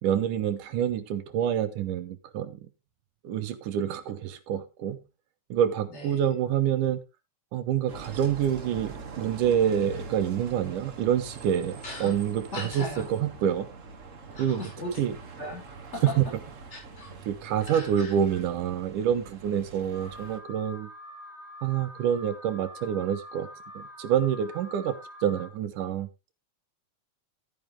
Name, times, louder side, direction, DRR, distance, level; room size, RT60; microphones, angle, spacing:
voice 1, 0.0-2.6 3.2-5.0 5.5-7.0 7.5-11.8 12.0-13.7 14.4-14.6 15.0-15.1 16.2-16.3 17.3-20.9 21.6-23.5 23.7-24.9 25.2-26.1, right 9 dB, 75° right, 9 dB, 2.7 m, -27 dB
voice 2, 5.9-6.2 11.8-12.1 12.5-13.1 14.3-14.9 15.4-15.6 15.9-16.2 16.7-17.1 17.6-18.1, left 1 dB, 20° left, -1 dB, 5.8 m, -37 dB
Bus, 7.9-20.4, right 4 dB, 55° right, 0.8 m, -44 dB
Alarm, 19.9-25.5, equal, 40° left, 0.9 m, -45 dB
12.0 x 9.3 x 3.4 m, 0.25 s
omnidirectional pair, 3.8 m